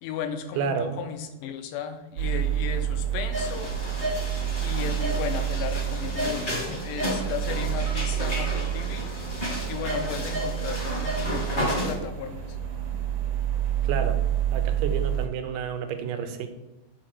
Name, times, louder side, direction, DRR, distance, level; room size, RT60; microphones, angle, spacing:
voice 1, 0.0-3.7 4.6-9.1 9.7-12.6 15.5-15.6, left 7 dB, 80° left, 7 dB, 2.2 m, -35 dB
voice 2, 0.6-0.9 13.8-14.2 14.5-16.5, right 6 dB, 85° right, 7 dB, 2.3 m, -30 dB
sound 1, 2.2-15.3, right 10 dB, 70° right, 2.5 m, -29 dB
sound 2, 3.3-11.9, equal, 30° left, 0.9 m, -32 dB
6.5 x 4.3 x 6.3 m, 0.99 s
omnidirectional pair, 3.8 m